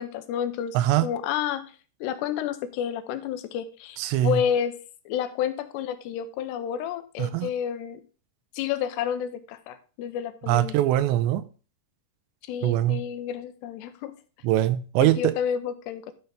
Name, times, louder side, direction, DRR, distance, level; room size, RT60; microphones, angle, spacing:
voice 1, 0.0-0.8 1.0-1.6 2.0-4.8 5.1-8.0 8.5-10.8 12.5-14.1 15.0-16.1, left 9 dB, 80° left, 2.8 m, -30 dB
voice 2, 0.7-1.1 4.0-4.4 7.2-7.5 10.5-11.5 12.6-13.0 14.4-15.3, right 13 dB, 90° right, 2.9 m, -22 dB
12.5 x 5.7 x 3.5 m
omnidirectional pair, 5.0 m